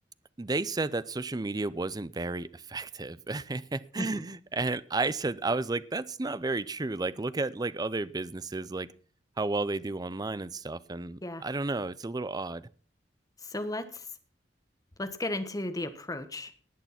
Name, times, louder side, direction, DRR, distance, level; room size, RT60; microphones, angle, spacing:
voice 1, 0.4-8.9 9.4-12.7, right 3 dB, 20° right, 17 dB, 0.5 m, -32 dB
voice 2, 13.4-14.2 15.0-16.5, left 1 dB, 20° left, 9 dB, 1.4 m, -35 dB
19.0 x 6.7 x 5.9 m, 0.41 s
head